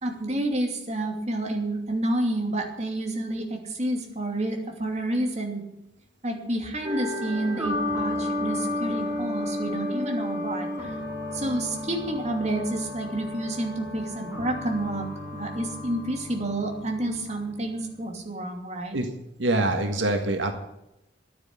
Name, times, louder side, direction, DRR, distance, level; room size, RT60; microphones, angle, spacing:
voice 1, 0.0-5.6 6.2-10.9 11.3-15.1 15.3-19.0, right 1 dB, 35° right, 2 dB, 2.7 m, -29 dB
sound 1, 6.8-17.9, left 1 dB, 10° right, 3.4 m, -32 dB
voice 2, 19.4-20.5, right 2 dB, 90° right, 5 dB, 1.8 m, -24 dB
11.5 x 9.5 x 8.7 m, 0.88 s
head